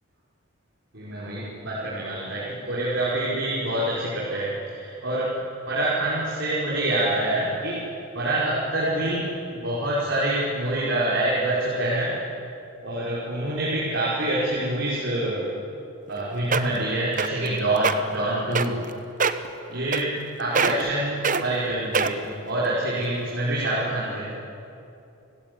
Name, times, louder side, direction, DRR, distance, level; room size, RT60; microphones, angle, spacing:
voice 1, 0.9-5.3 5.7-7.8 8.1-9.2 9.5-12.1 12.8-15.4 16.1-18.8 19.7-20.1 20.4-24.3, right 1 dB, 60° right, -7 dB, 5.7 m, -26 dB
sound 1, 16.1-16.2 16.5-16.8 17.2-17.5 17.8-17.9 18.6-18.9 19.2-19.5 19.9-20.3 20.6-20.9 21.2-21.4 21.9-22.3 22.9-23.0, right 5 dB, 40° right, 1.0 m, -23 dB
30.0 x 17.0 x 9.8 m, 2.8 s
head